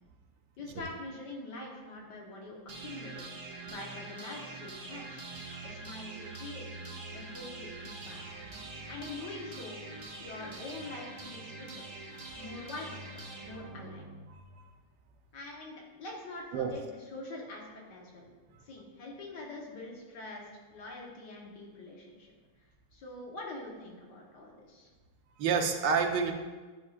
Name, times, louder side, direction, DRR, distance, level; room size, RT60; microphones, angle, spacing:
voice 1, 0.6-3.2 3.7-5.3 5.6-6.7 7.1-8.2 8.9-9.8 10.2-11.8 12.4-13.1 13.4-14.1 15.3-18.2 18.6-22.3 22.9-24.9, left 2 dB, 80° left, -1 dB, 1.8 m, -44 dB
sound 1, 2.7-14.6, right 3 dB, 50° right, 0.4 m, -44 dB
voice 2, 14.3-14.6 16.5-16.7 25.4-26.3, right 6 dB, 90° right, 4 dB, 1.4 m, -29 dB
9.9 x 5.4 x 2.4 m, 1.3 s
omnidirectional pair, 1.9 m